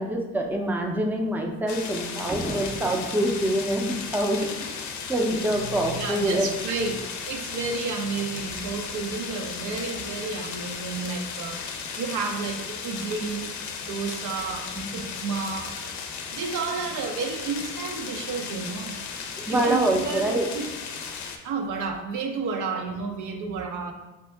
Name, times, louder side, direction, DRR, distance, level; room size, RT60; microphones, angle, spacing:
voice 1, 0.0-4.4 5.1-6.5 19.4-20.5, right 1 dB, 5° right, 1 dB, 0.4 m, -25 dB
sound 1, 1.7-21.4, left 6 dB, 70° left, 0.5 m, -35 dB
voice 2, 5.6-7.0 7.3-13.5 13.9-15.8 16.3-19.0 19.5-20.7 21.4-23.9, right 4 dB, 80° right, 4 dB, 0.5 m, -31 dB
3.4 x 2.8 x 3.3 m, 1.1 s
cardioid pair, 90°, 30 cm